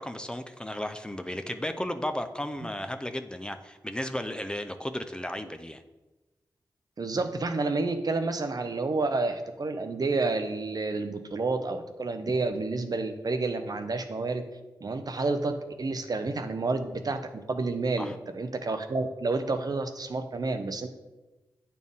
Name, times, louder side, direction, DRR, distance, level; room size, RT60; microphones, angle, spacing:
voice 1, 0.0-5.8 18.0-18.2, left 1 dB, 10° left, 7 dB, 0.5 m, -34 dB
voice 2, 7.0-14.4 14.8-20.9, right 3 dB, 55° right, 7 dB, 0.6 m, -30 dB
9.0 x 4.2 x 3.6 m, 1.1 s
cardioid pair, 55°, 8 cm